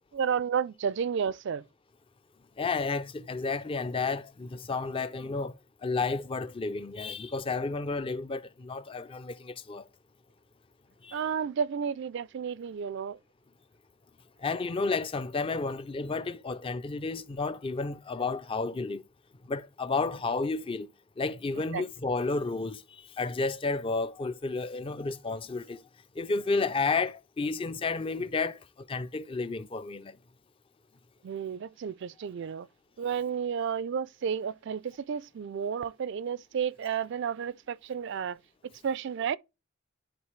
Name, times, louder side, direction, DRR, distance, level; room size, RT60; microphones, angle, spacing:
voice 1, 0.1-1.6 11.1-13.2 21.7-21.8 31.2-32.7 33.0-38.4 38.8-39.4, right 7 dB, 60° right, 0.3 m, -32 dB
voice 2, 2.6-5.5 5.8-9.9 11.0-11.2 14.4-19.0 19.5-20.9 21.2-22.8 23.2-25.8 26.2-30.2, left 3 dB, 25° left, 0.4 m, -31 dB
10.5 x 4.2 x 3.2 m
head